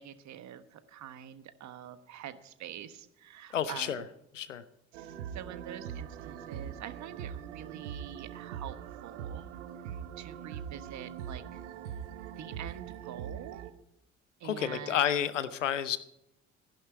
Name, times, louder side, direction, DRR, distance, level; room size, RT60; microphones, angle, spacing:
voice 1, 0.0-4.0 4.9-8.8 9.0-9.5 10.2-11.6 12.4-13.7 14.4-15.1, right 10 dB, 50° right, 12 dB, 1.3 m, -45 dB
voice 2, 3.5-4.0 4.3-4.6 14.4-16.0, left 9 dB, 85° left, 16 dB, 0.7 m, -30 dB
sound 1, 4.9-13.7, right 9 dB, 75° right, 1.1 m, -42 dB
15.0 x 11.5 x 4.7 m, 0.80 s
figure-of-eight pair, 55°, 37 cm